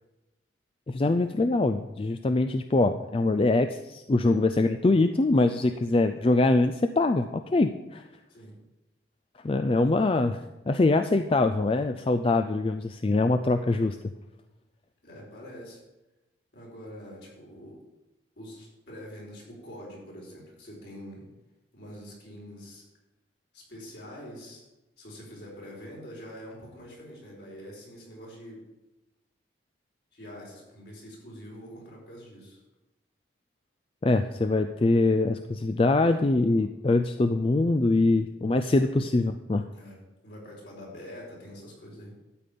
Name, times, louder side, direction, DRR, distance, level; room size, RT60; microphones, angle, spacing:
voice 1, 0.9-8.0 9.4-10.4 10.7-14.0 34.0-39.7, left 2 dB, 30° left, 8 dB, 0.4 m, -23 dB
voice 2, 15.0-15.8 16.5-17.8 18.3-21.3 21.7-22.8 23.5-24.6 25.0-28.7 30.1-32.6 39.7-40.0 40.2-42.2, equal, 60° left, -3 dB, 4.6 m, -45 dB
13.0 x 5.3 x 8.4 m, 1.0 s
head